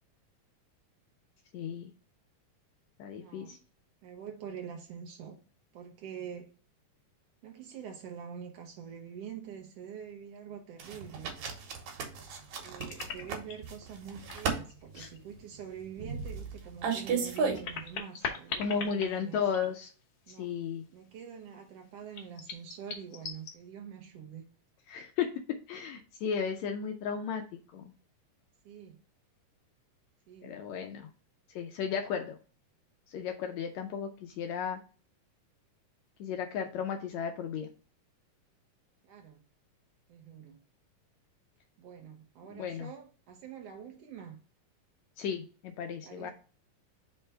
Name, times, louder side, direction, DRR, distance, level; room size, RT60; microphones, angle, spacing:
voice 1, 1.5-1.9 3.0-3.6 15.0-15.1 18.6-19.9 20.3-20.8 24.9-27.4 27.7-27.8 30.4-31.1 31.5-32.4 33.1-34.8 36.2-37.7 42.5-42.9 45.2-46.3, left 7 dB, 85° left, 1.6 m, -34 dB
voice 2, 3.1-3.6 4.0-5.4 5.7-6.5 7.4-11.3 12.5-19.4 20.3-20.6 20.9-24.4 28.6-29.0 30.3-30.6 39.0-39.4 40.1-40.6 41.8-44.4 45.9-46.3, right 8 dB, 80° right, 1.4 m, -45 dB
sound 1, 10.8-17.9, right 5 dB, 65° right, 2.2 m, -35 dB
sound 2, 12.4-13.7 14.2-15.2 15.5-15.6 17.1-20.0 20.3-20.4 22.1-23.5, left 5 dB, 60° left, 1.6 m, -40 dB
5.2 x 3.4 x 5.4 m
omnidirectional pair, 3.8 m